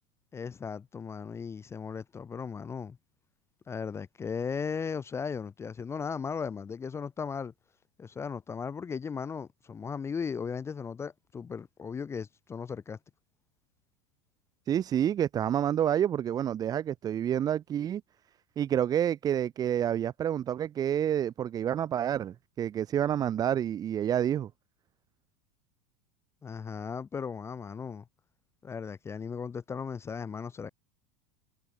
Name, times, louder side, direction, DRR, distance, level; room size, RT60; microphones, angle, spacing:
voice 1, 0.3-3.0 3.7-7.5 8.0-13.0 26.4-28.0 28.6-30.7, left 6 dB, 20° left, 0.7 m, -36 dB
voice 2, 14.7-18.0 18.6-24.5, right 10 dB, 25° right, 0.6 m, -28 dB
supercardioid pair, 125°, 15 cm